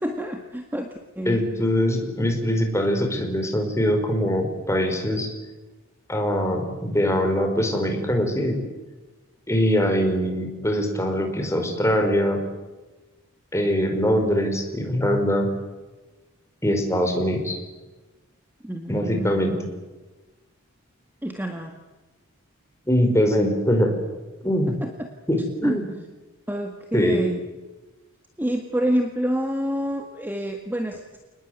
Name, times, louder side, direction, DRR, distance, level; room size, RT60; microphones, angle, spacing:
voice 1, 0.0-1.4 18.6-19.6 21.2-21.7 24.8-25.1 25.6-25.8 26.5-27.4 28.4-31.2, equal, 10° right, 4 dB, 1.8 m, -27 dB
voice 2, 1.3-5.3 6.1-8.6 9.5-12.4 13.5-15.5 16.6-17.6 18.9-19.5 22.9-24.0 24.4-24.8 25.3-25.9 26.9-27.2, equal, 15° left, 4 dB, 4.9 m, -22 dB
28.5 x 20.0 x 9.3 m, 1.2 s
head